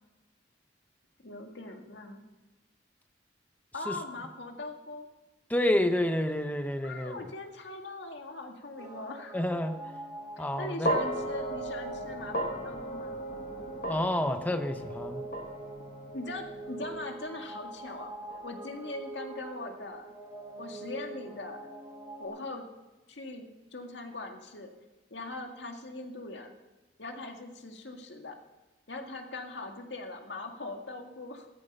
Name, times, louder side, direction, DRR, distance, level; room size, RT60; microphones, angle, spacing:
voice 1, 1.2-2.2 3.7-5.1 6.8-9.4 10.4-13.2 16.1-18.1 18.4-20.1 20.6-21.6 22.2-22.7 23.1-24.7 25.1-26.5 27.0-28.4 28.9-31.5, left 2 dB, 70° left, 3 dB, 1.9 m, -41 dB
voice 2, 5.5-7.2 9.3-9.8 10.4-10.9 13.9-15.2, left 1 dB, 10° left, 7 dB, 0.9 m, -29 dB
sound 1, 8.8-22.3, right 2 dB, 20° right, 2.5 m, -44 dB
sound 2, 10.8-19.2, right 1 dB, 45° left, 1.7 m, -37 dB
15.5 x 13.0 x 5.5 m, 1.1 s
head